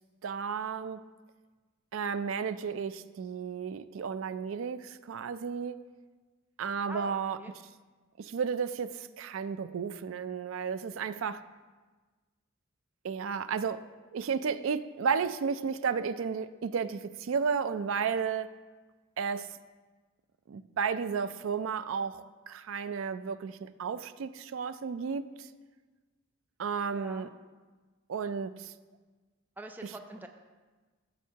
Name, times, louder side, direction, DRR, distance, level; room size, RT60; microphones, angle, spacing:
voice 1, 0.2-1.0 1.9-5.8 6.6-7.4 8.2-11.4 13.0-13.8 14.1-18.5 19.2-19.5 20.5-25.5 26.6-27.3 28.1-28.7, right 6 dB, 75° right, 13 dB, 0.4 m, -33 dB
voice 2, 6.9-7.5 26.9-27.3 29.6-30.3, right 1 dB, 10° right, 4 dB, 0.4 m, -44 dB
13.5 x 7.2 x 2.8 m, 1.3 s
head